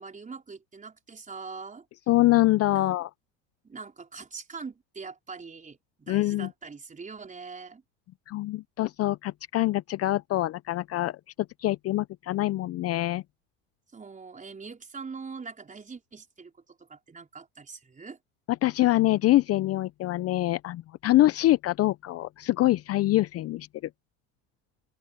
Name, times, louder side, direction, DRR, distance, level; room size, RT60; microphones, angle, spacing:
voice 1, 0.0-1.9 2.7-2.9 3.6-7.8 13.9-18.2, right 4 dB, 20° right, 4.5 m, -43 dB
voice 2, 2.1-3.1 6.1-6.5 8.3-11.2 11.6-13.2 18.6-23.7, left 16 dB, 40° left, 0.6 m, -24 dB
open air
supercardioid pair, 95°, 36 cm